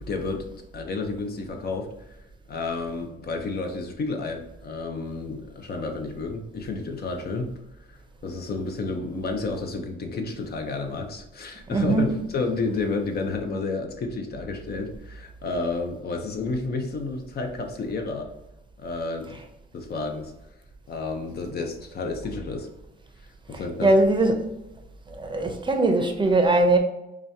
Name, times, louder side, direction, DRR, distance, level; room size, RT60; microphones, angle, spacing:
voice 1, 0.0-0.4 0.7-1.9 2.5-7.5 8.2-18.3 18.8-19.4 19.7-20.3 20.9-22.7 23.5-23.9, left 3 dB, 50° left, 0.7 m, -31 dB
voice 2, 11.7-12.1 23.8-24.5 25.2-26.8, right 2 dB, 25° right, 0.6 m, -20 dB
4.8 x 2.4 x 2.7 m
cardioid pair, 90°, 20 cm